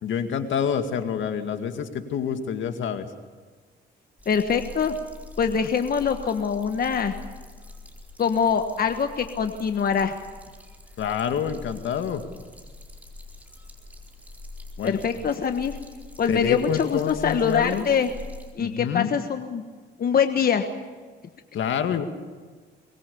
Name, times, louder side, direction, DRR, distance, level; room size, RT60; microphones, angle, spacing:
voice 1, 0.0-3.1 11.0-12.2 14.8-15.0 16.3-17.9 18.6-19.1 21.5-22.0, left 8 dB, 75° left, 7 dB, 2.1 m, -27 dB
sound 1, 4.2-18.5, left 2 dB, 10° right, 4.4 m, -44 dB
voice 2, 4.3-4.9 5.4-7.1 8.2-10.1 14.8-15.8 16.2-18.1 18.6-19.6 20.0-20.7, left 7 dB, 50° left, 7 dB, 1.4 m, -23 dB
23.5 x 21.0 x 7.0 m, 1.5 s
cardioid pair, 90°, 20 cm